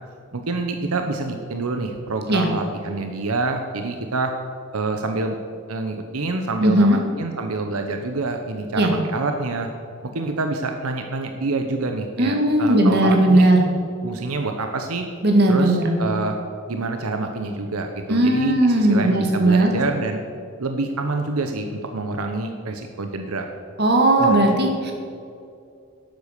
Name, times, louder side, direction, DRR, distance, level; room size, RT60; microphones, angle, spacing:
voice 1, 0.3-4.3 4.7-5.4 5.7-9.7 10.1-13.5 14.0-15.0 15.5-16.4 16.7-20.2 20.6-23.5 24.2-24.3, right 3 dB, 90° right, 5 dB, 0.9 m, -27 dB
voice 2, 6.6-7.0 8.8-8.9 12.2-13.6 15.2-15.9 18.1-19.7 23.8-24.9, right 1 dB, 50° right, 2 dB, 2.1 m, -17 dB
12.0 x 8.4 x 6.7 m, 2.4 s
head